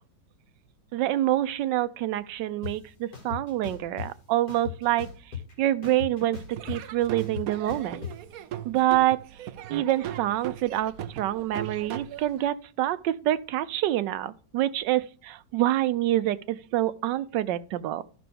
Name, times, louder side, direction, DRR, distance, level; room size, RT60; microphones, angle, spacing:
voice 1, 0.9-6.4 6.7-8.1 8.6-9.2 9.7-18.0, right 13 dB, 85° right, 1.3 m, -26 dB
sound 1, 2.6-2.7 3.1-4.1 4.5-5.5 5.8-8.1, left 8 dB, 60° left, 2.6 m, -37 dB
Laughter / Drum, 6.5-12.5, right 11 dB, 65° right, 1.0 m, -38 dB
13.0 x 6.1 x 3.6 m
omnidirectional pair, 1.9 m